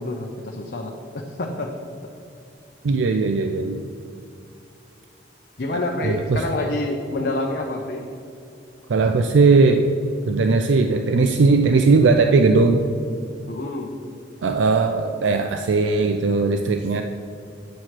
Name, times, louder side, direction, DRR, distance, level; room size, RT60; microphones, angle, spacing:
voice 1, 0.0-1.7 5.6-8.0 13.5-13.9, left 2 dB, 55° left, 1 dB, 0.6 m, -27 dB
voice 2, 2.8-3.8 6.0-6.4 8.9-9.8 10.3-12.8 14.4-17.0, right 4 dB, 85° right, 5 dB, 0.4 m, -18 dB
9.1 x 4.8 x 5.8 m, 2.6 s
head